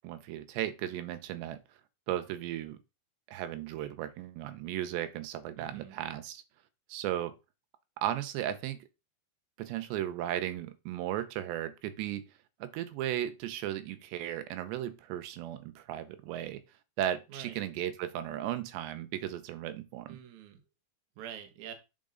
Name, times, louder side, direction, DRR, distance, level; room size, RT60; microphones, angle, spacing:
voice 1, 0.0-1.6 2.1-2.8 3.3-6.4 6.9-7.3 8.0-8.9 9.6-12.2 12.6-16.6 17.0-20.2, right 12 dB, 80° right, 3.0 m, -35 dB
voice 2, 5.6-6.0 17.3-17.6 20.1-20.6 21.2-21.7, right 8 dB, 65° right, 2.0 m, -46 dB
8.7 x 5.2 x 3.9 m
omnidirectional pair, 5.0 m